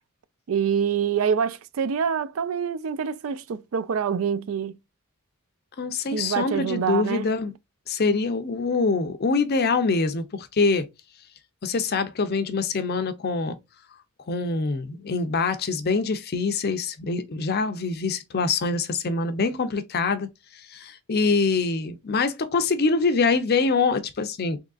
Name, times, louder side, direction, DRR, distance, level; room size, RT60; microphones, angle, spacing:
voice 1, 0.5-4.8 6.1-7.3, right 7 dB, 65° right, 0.4 m, -26 dB
voice 2, 5.8-7.5 7.9-10.9 11.6-13.6 14.3-20.3 20.7-24.6, left 4 dB, 50° left, 0.6 m, -24 dB
3.6 x 3.0 x 2.4 m
head